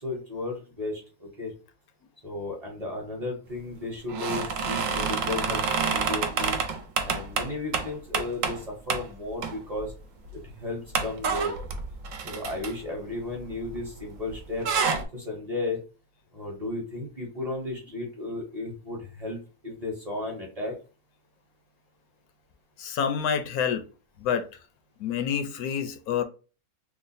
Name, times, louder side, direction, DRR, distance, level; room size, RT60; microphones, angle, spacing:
voice 1, 0.0-1.5 2.2-6.6 7.0-9.9 10.3-11.5 12.2-14.7 15.1-15.8 16.3-19.4 19.6-20.8, left 2 dB, 30° right, 0.8 m, -34 dB
sound 1, 4.1-8.6 8.9-9.1 9.4-9.9 10.3-10.4 10.9-14.0 14.3-15.0, right 5 dB, 70° right, 0.9 m, -28 dB
voice 2, 22.8-23.8 24.2-24.5 25.0-26.2, left 7 dB, 80° left, 1.0 m, -27 dB
3.0 x 2.1 x 4.0 m
omnidirectional pair, 1.5 m